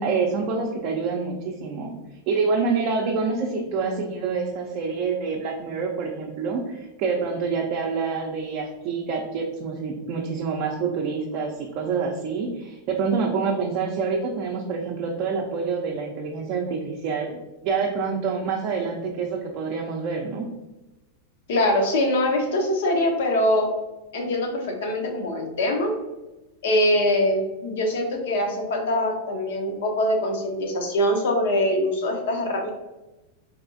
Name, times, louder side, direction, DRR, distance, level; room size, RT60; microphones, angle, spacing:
voice 1, 0.0-1.9 2.3-20.5, right 5 dB, 45° right, 0 dB, 0.4 m, -27 dB
voice 2, 21.5-23.7 24.1-25.9 26.6-32.7, left 1 dB, 75° left, 2 dB, 0.8 m, -23 dB
4.1 x 2.3 x 2.6 m, 1.1 s
supercardioid pair, 140°, 0 cm